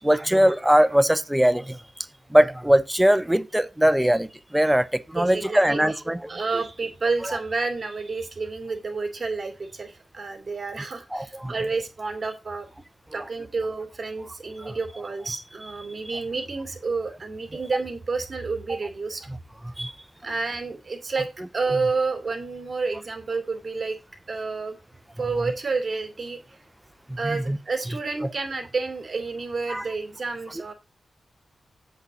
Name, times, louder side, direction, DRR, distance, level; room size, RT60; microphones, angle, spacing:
voice 1, 0.0-1.8 2.3-6.3 7.2-7.4 11.1-11.5 14.6-14.8 19.8-19.9 27.2-27.6 29.7-29.9, equal, 5° right, 0.6 m, -21 dB
voice 2, 5.2-6.0 6.3-12.7 13.1-19.3 20.2-21.3 21.5-24.0 24.3-24.8 25.2-26.4 27.2-30.7, right 4 dB, 35° right, 2.4 m, -30 dB
7.8 x 4.1 x 6.6 m
wide cardioid pair, 95°, 0 cm